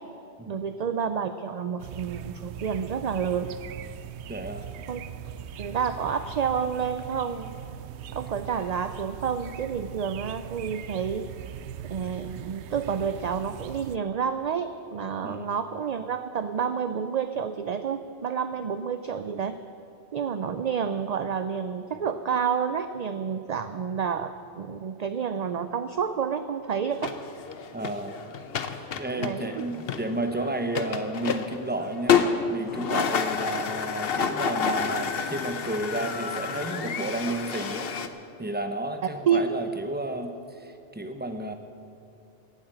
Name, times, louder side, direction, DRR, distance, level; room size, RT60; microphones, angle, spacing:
voice 1, 0.5-3.5 4.9-5.0 5.6-7.6 8.1-11.3 11.9-19.6 20.1-27.1 29.2-29.7 39.3-39.5, right 7 dB, 50° right, 10 dB, 0.5 m, -29 dB
sound 1, 1.8-14.0, right 9 dB, 90° right, 0.9 m, -40 dB
voice 2, 4.3-4.7 15.2-15.5 27.7-28.2 29.0-37.9 38.4-41.5, right 1 dB, 10° right, 6 dB, 0.9 m, -32 dB
sound 2, 26.9-38.1, left 6 dB, 65° left, 1.0 m, -29 dB
17.5 x 8.7 x 7.7 m, 2.7 s
omnidirectional pair, 1.1 m